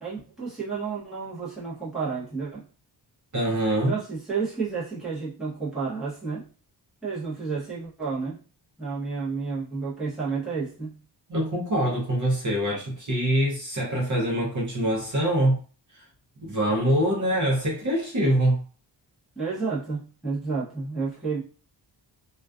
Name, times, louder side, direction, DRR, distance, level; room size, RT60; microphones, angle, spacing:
voice 1, 0.0-2.6 3.9-6.5 7.0-8.4 8.8-11.0 19.4-21.4, right 4 dB, ahead, 0.8 m, -31 dB
voice 2, 3.3-3.9 11.3-15.6 15.9-16.0 16.4-18.6, right 1 dB, 40° right, 0.7 m, -24 dB
2.3 x 2.3 x 2.3 m
wide cardioid pair, 165°, 45 cm